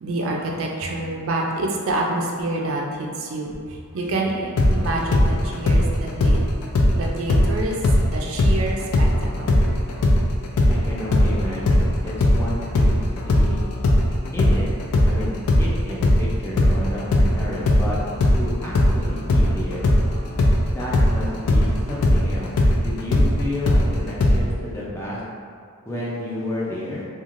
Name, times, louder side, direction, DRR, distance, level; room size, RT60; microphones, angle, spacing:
voice 1, 0.0-6.5 7.0-9.8, right 2 dB, 65° right, -1 dB, 0.4 m, -27 dB
sound 1, 4.6-8.1 8.4-16.2 16.6-24.4, left 1 dB, 90° left, 0.4 m, -18 dB
voice 2, 10.7-13.6 14.3-14.7 15.1-18.0 18.3-19.9 20.7-22.5 22.8-25.2 25.9-27.0, left 1 dB, 10° left, -7 dB, 0.4 m, -31 dB
3.1 x 2.4 x 2.4 m, 2.1 s
head